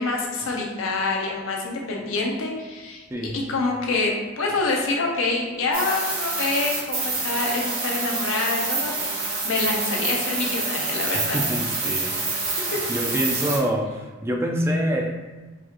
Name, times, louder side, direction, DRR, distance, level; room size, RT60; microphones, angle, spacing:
voice 1, 0.0-8.9 9.4-11.4 11.8-11.9, left 3 dB, 85° left, -1 dB, 0.7 m, -26 dB
sound 1, 5.7-13.6, right 3 dB, 85° right, 1.5 m, -27 dB
voice 2, 11.1-12.1 12.6-15.2, equal, 15° right, 1 dB, 0.4 m, -26 dB
4.5 x 2.4 x 2.9 m, 1.3 s
head